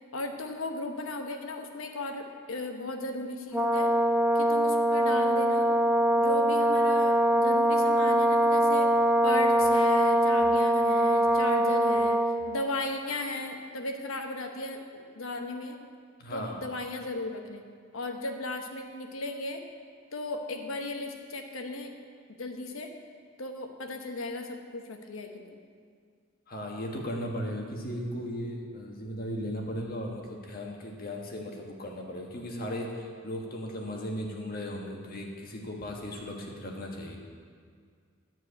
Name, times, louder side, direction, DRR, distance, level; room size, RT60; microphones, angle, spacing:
voice 1, 0.1-3.9 4.3-5.7 6.2-8.9 9.2-14.8 15.1-15.8 16.3-17.6 17.9-19.6 20.1-21.9 22.4-22.9 23.4-25.6, left 2 dB, 85° left, 4 dB, 1.0 m, -36 dB
Brass instrument, 3.5-12.4, equal, 5° right, 0.5 m, -23 dB
voice 2, 16.2-16.6 26.5-37.2, equal, 45° left, 0 dB, 1.5 m, -36 dB
12.5 x 4.6 x 8.2 m, 2.1 s
head